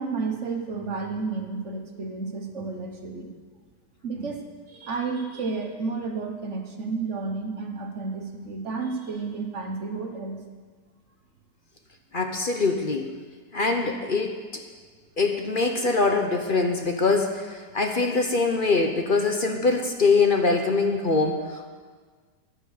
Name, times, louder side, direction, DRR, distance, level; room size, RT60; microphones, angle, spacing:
voice 1, 0.0-3.3 4.0-10.4, right 4 dB, 45° right, 3 dB, 1.4 m, -31 dB
voice 2, 12.1-13.1 13.5-14.6 15.2-21.7, left 3 dB, 45° left, 4 dB, 0.7 m, -23 dB
10.5 x 10.0 x 6.5 m, 1.5 s
omnidirectional pair, 1.9 m